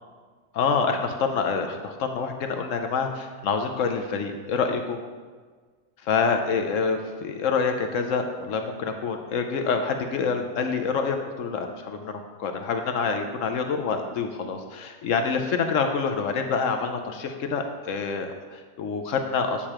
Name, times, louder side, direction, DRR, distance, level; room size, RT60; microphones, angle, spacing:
voice 1, 0.5-5.0 6.0-19.7, left 5 dB, 65° left, 5 dB, 0.9 m, -27 dB
8.5 x 6.6 x 2.9 m, 1.5 s
omnidirectional pair, 1.5 m